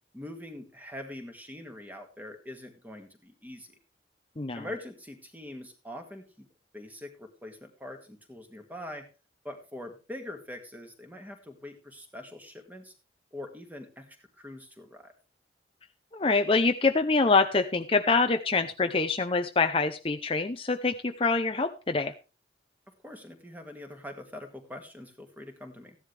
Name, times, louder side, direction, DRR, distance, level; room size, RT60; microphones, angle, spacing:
voice 1, 0.1-3.8 4.5-6.5 6.7-9.1 9.4-12.9 13.3-15.1 23.0-26.0, left 1 dB, 10° right, 5 dB, 2.0 m, -43 dB
voice 2, 16.1-22.1, left 3 dB, 30° left, 7 dB, 0.7 m, -25 dB
15.0 x 11.0 x 3.4 m, 0.32 s
head